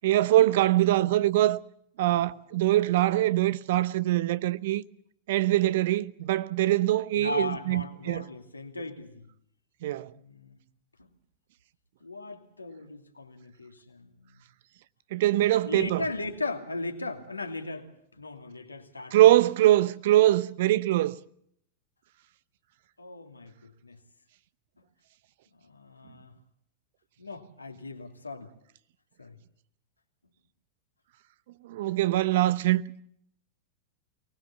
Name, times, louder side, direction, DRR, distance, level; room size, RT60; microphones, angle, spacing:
voice 1, 0.0-1.6 2.0-4.8 5.3-8.2 9.8-10.1 15.1-16.0 19.1-21.2 31.6-33.0, right 14 dB, 55° right, 0.8 m, -23 dB
voice 2, 7.1-9.3 9.9-10.6 11.0-11.1 12.0-14.3 15.6-19.2 23.0-24.0 25.5-26.3 27.2-28.5 29.2-29.4, left 2 dB, 80° left, 2.5 m, -38 dB
24.0 x 19.5 x 7.2 m
figure-of-eight pair, 90°, 0 cm